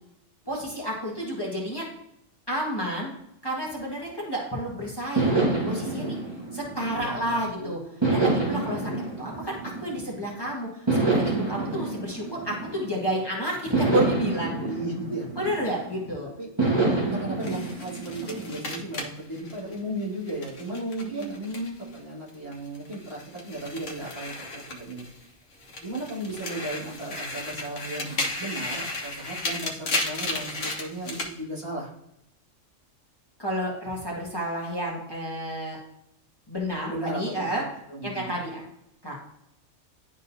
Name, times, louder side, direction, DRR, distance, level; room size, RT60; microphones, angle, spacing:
voice 1, 0.4-1.9 2.5-3.1 3.4-6.2 6.5-7.8 8.1-8.9 9.2-14.5 15.4-16.3 16.9-17.1 21.0-21.3 33.4-35.8 36.5-37.6 38.0-38.6 39.0-39.2, equal, 20° left, -4 dB, 1.6 m, -30 dB
sound 1, 5.2-7.4 8.0-10.3 10.9-13.1 13.7-16.0 16.6-18.8, right 3 dB, 20° right, 1.4 m, -27 dB
voice 2, 6.9-7.7 8.6-8.9 14.6-15.4 16.4-16.5 16.9-25.0 25.8-31.9 36.7-37.6 37.9-38.3, right 1 dB, 50° right, -6 dB, 2.5 m, -35 dB
sound 2, 17.4-22.0 22.3-25.3 25.6-31.3, left 2 dB, 70° left, 1.5 m, -34 dB
11.0 x 3.9 x 2.7 m, 0.83 s
omnidirectional pair, 1.3 m